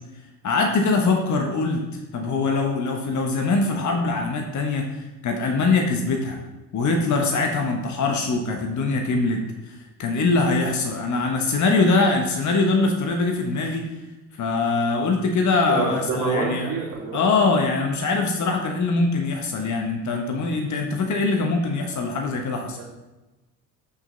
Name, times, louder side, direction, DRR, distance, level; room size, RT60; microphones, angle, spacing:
voice 1, 0.4-1.8 2.1-6.4 6.7-9.4 9.7-13.9 14.4-16.7 17.1-22.8, left 3 dB, 35° left, 2 dB, 1.3 m, -23 dB
voice 2, 15.7-17.3 22.8-22.9, right 4 dB, 40° right, -4 dB, 3.0 m, -27 dB
8.1 x 6.1 x 4.0 m, 1.1 s
figure-of-eight pair, 55°, 49 cm